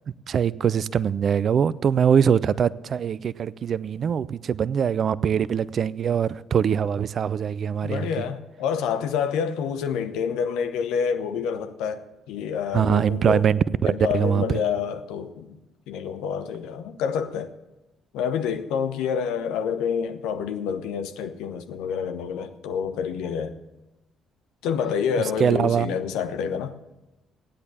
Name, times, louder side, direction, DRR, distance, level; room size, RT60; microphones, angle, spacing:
voice 1, 0.3-8.1 12.7-14.4 25.4-25.9, right 7 dB, 45° right, 0.5 m, -22 dB
voice 2, 7.8-13.4 13.9-15.6 15.9-17.5 18.1-23.6 24.6-26.7, left 7 dB, 65° left, 1.0 m, -28 dB
15.0 x 10.5 x 6.9 m
figure-of-eight pair, 45°, 0 cm